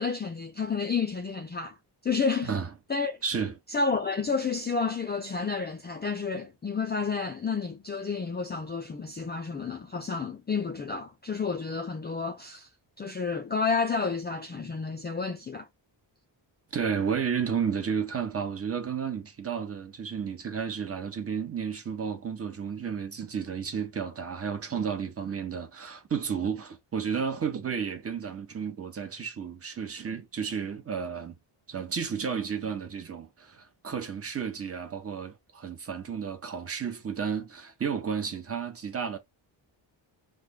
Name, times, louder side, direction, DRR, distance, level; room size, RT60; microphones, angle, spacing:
voice 1, 0.0-1.8 2.0-2.5 2.9-3.2 3.7-12.7 13.0-15.7, left 5 dB, 25° left, 0.3 m, -30 dB
voice 2, 3.2-3.5 16.7-31.4 31.7-39.2, right 6 dB, 30° right, 0.9 m, -32 dB
3.2 x 2.1 x 3.5 m
wide cardioid pair, 150°, 45 cm